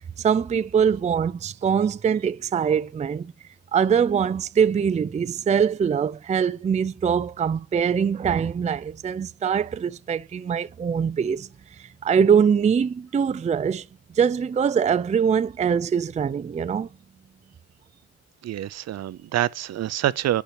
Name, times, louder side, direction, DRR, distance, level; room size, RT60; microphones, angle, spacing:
voice 1, 0.2-3.3 3.7-11.5 12.0-13.8 14.2-16.9, right 7 dB, 25° right, 0.4 m, -23 dB
voice 2, 18.4-20.4, right 12 dB, 60° right, 0.6 m, -26 dB
8.6 x 5.7 x 5.9 m
cardioid pair, 90°, 30 cm